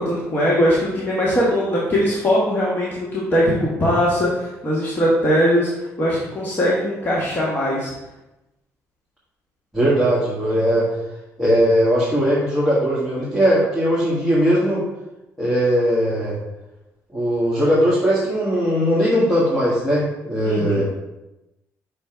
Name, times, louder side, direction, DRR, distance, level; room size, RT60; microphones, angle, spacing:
voice 1, 0.0-7.9 20.4-20.8, equal, 30° left, -6 dB, 1.3 m, -20 dB
voice 2, 9.7-10.9 11.4-14.8 15.4-16.3 17.1-20.8, equal, ahead, -8 dB, 1.8 m, -19 dB
6.3 x 3.4 x 4.5 m, 0.97 s
cardioid pair, 105°, 6 cm